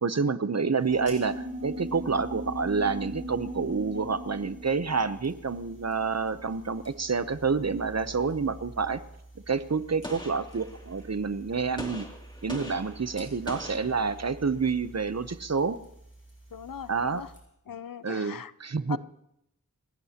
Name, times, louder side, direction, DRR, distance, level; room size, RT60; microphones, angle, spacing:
voice 1, 0.0-9.0 9.5-12.1 12.4-15.8 16.9-17.2 18.0-19.0, right 5 dB, 50° right, 0.8 m, -28 dB
sound 1, 0.7-6.7, equal, 20° right, 3.2 m, -39 dB
sound 2, 0.8-17.4, right 1 dB, 35° left, 7.6 m, -49 dB
Gunshot gunfire, 10.0-11.1 11.8-14.6, left 1 dB, 15° left, 2.6 m, -42 dB
voice 2, 16.5-17.3 17.7-18.5 18.9-19.0, left 8 dB, 75° left, 0.6 m, -39 dB
29.5 x 16.0 x 2.9 m
wide cardioid pair, 50°, 34 cm